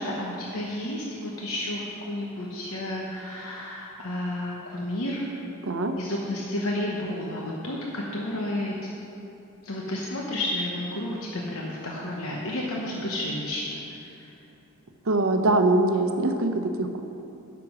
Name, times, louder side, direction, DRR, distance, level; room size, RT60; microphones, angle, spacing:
voice 1, 0.0-1.8 2.1-5.3 6.0-8.7 9.6-14.3, left 1 dB, 70° left, -3 dB, 1.0 m, -31 dB
voice 2, 5.6-6.0 15.0-17.0, right 2 dB, 65° right, 6 dB, 0.7 m, -23 dB
9.7 x 6.0 x 6.2 m, 2.7 s
head